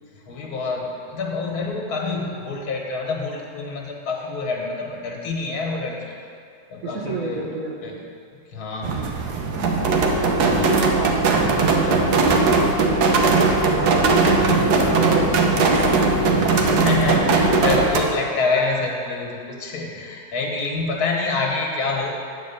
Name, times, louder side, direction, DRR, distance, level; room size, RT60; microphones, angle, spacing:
voice 1, 0.1-6.2 6.7-7.5 7.8-8.0 8.5-9.0 10.4-10.9 16.5-22.3, left 3 dB, 70° left, -1 dB, 1.8 m, -27 dB
voice 2, 6.8-7.7 8.9-9.1 10.2-11.3 11.5-14.0 14.3-15.9 17.3-17.4, right 3 dB, 65° right, 0 dB, 1.5 m, -31 dB
sound 1, 8.8-18.0, right 3 dB, 85° right, 1.4 m, -19 dB
8.8 x 4.5 x 7.0 m, 2.5 s
omnidirectional pair, 1.7 m